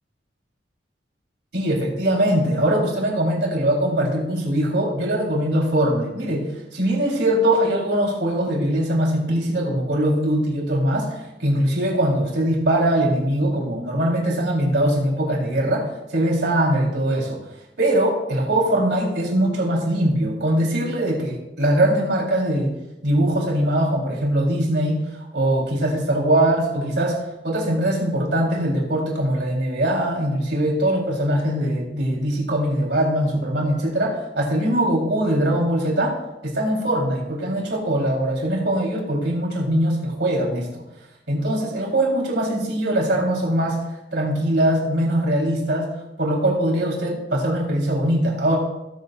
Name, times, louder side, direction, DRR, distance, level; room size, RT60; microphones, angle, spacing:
voice 1, 1.5-17.4 17.8-22.7 23.0-36.2 36.4-40.8 41.3-43.8 44.1-45.9 46.2-48.6, right 1 dB, 75° right, -2 dB, 4.0 m, -21 dB
21.0 x 8.1 x 2.6 m, 0.96 s
head